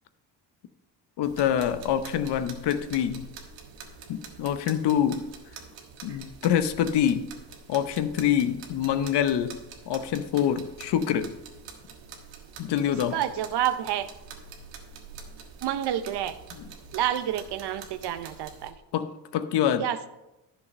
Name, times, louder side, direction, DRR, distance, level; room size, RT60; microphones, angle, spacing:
voice 1, 1.2-3.3 4.1-5.3 6.0-7.3 7.7-9.6 9.9-11.3 12.6-13.2 18.9-19.9, left 9 dB, 70° left, 1.0 m, -26 dB
sound 1, 1.2-18.7, right 5 dB, 85° right, 1.6 m, -46 dB
voice 2, 13.1-14.1 15.6-16.3 16.9-18.7 19.8-20.1, right 11 dB, 65° right, 0.9 m, -28 dB
11.0 x 6.7 x 5.2 m
supercardioid pair, 75°, 43 cm